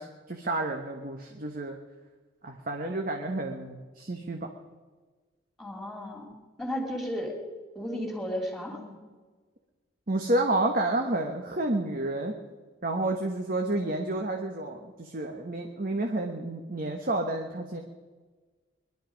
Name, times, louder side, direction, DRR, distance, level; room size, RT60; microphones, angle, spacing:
voice 1, 0.0-1.8 2.4-4.5 10.1-12.3 12.8-17.8, right 2 dB, 45° right, 3 dB, 1.2 m, -30 dB
voice 2, 5.6-6.3 6.6-7.3 7.7-8.8, equal, ahead, 0 dB, 3.1 m, -33 dB
22.0 x 12.0 x 5.2 m, 1.4 s
head